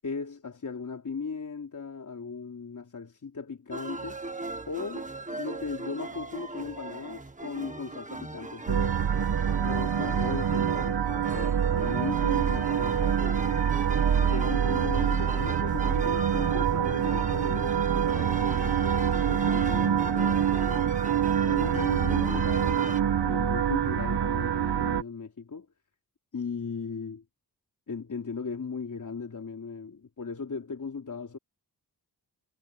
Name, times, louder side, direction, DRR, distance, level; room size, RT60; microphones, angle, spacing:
voice 1, 0.0-4.2 4.7-9.0 9.6-13.5 14.2-21.0 21.4-25.7 26.3-27.2 27.9-31.4, left 5 dB, 50° left, 3.4 m, -37 dB
sound 1, 3.7-23.0, right 2 dB, 20° right, 1.5 m, -38 dB
sound 2, 8.7-25.0, right 8 dB, 90° right, 1.4 m, -26 dB
wide cardioid pair, 145°, 39 cm